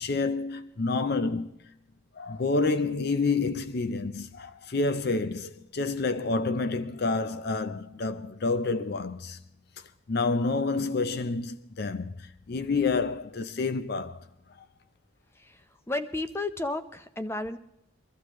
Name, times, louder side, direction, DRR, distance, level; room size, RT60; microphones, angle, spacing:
voice 1, 0.0-1.5 2.2-9.4 10.1-14.2, left 3 dB, 50° left, 0.6 m, -28 dB
voice 2, 15.9-17.6, left 2 dB, 10° left, 0.6 m, -32 dB
23.5 x 13.5 x 3.1 m
head